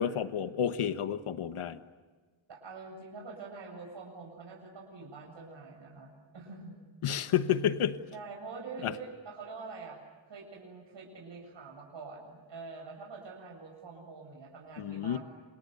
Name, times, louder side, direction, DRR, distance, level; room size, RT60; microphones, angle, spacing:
voice 1, 0.0-1.8 7.0-8.0 8.8-8.9 14.8-15.2, left 9 dB, 90° left, 10 dB, 1.5 m, -30 dB
voice 2, 2.5-6.8 8.1-10.0 10.3-15.2, right 4 dB, 60° right, 0 dB, 7.7 m, -45 dB
29.0 x 28.5 x 6.9 m, 1.4 s
wide cardioid pair, 170°, 49 cm